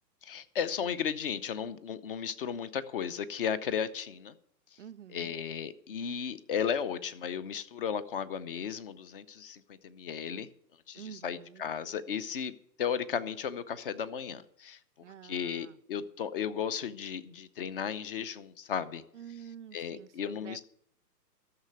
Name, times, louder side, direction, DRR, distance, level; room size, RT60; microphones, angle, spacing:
voice 1, 0.2-4.3 5.1-10.5 10.9-12.5 12.8-14.8 15.2-19.0 19.7-20.6, left 7 dB, 35° left, 0.7 m, -35 dB
voice 2, 4.8-5.4 10.9-11.7 15.0-15.8 19.1-20.7, right 9 dB, 50° right, 0.5 m, -48 dB
13.0 x 6.8 x 8.0 m
figure-of-eight pair, 130°, 50 cm